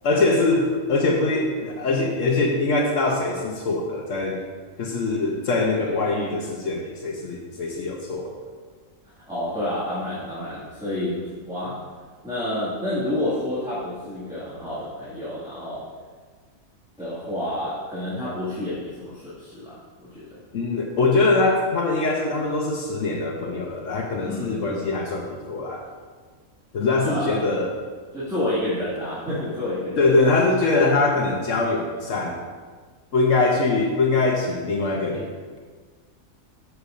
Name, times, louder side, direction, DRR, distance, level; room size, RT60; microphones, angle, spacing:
voice 1, 0.0-4.4 4.8-8.3 20.5-25.8 26.7-27.7 30.0-32.4 33.1-35.3, left 3 dB, 70° left, 0 dB, 1.2 m, -22 dB
voice 2, 9.3-11.8 12.2-15.9 17.0-20.4 24.2-24.8 27.0-27.4 28.1-30.4, left 1 dB, 5° right, -11 dB, 1.9 m, -29 dB
13.0 x 6.5 x 2.5 m, 1.5 s
omnidirectional pair, 1.4 m